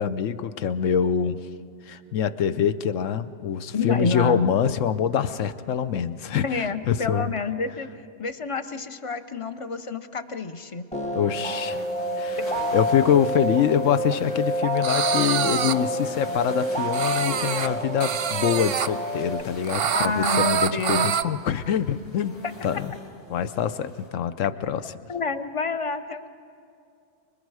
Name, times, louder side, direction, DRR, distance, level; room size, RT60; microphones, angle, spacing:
voice 1, 0.0-1.4 1.9-7.3 11.1-11.8 12.2-12.4 12.7-22.4 22.6-22.9 23.3-24.9, left 8 dB, 75° left, 12 dB, 1.0 m, -25 dB
voice 2, 3.7-4.5 6.4-10.9 19.9-21.1 22.4-22.5 25.1-26.3, left 4 dB, 35° left, 10 dB, 0.5 m, -28 dB
sound 1, 10.9-19.4, equal, 5° left, 0.8 m, -28 dB
sound 2, 11.3-24.1, left 1 dB, 60° left, 2.7 m, -43 dB
sound 3, 14.8-15.7 16.9-17.7 18.0-18.9 19.6-21.2, right 8 dB, 60° right, 0.7 m, -25 dB
28.5 x 21.0 x 4.8 m, 2.5 s
omnidirectional pair, 1.4 m